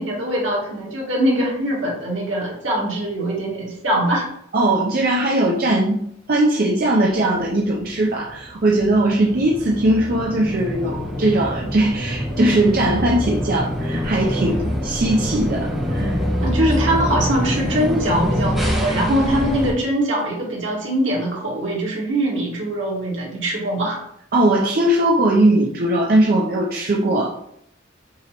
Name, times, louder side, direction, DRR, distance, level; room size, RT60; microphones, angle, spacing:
voice 1, 0.0-4.3 16.4-24.0, right 1 dB, 85° right, -4 dB, 1.9 m, -22 dB
voice 2, 4.5-16.2 24.3-27.3, right 1 dB, 50° right, -2 dB, 0.5 m, -19 dB
sound 1, 7.4-19.7, equal, ahead, 1.2 m, -25 dB
6.2 x 2.9 x 2.9 m, 0.72 s
head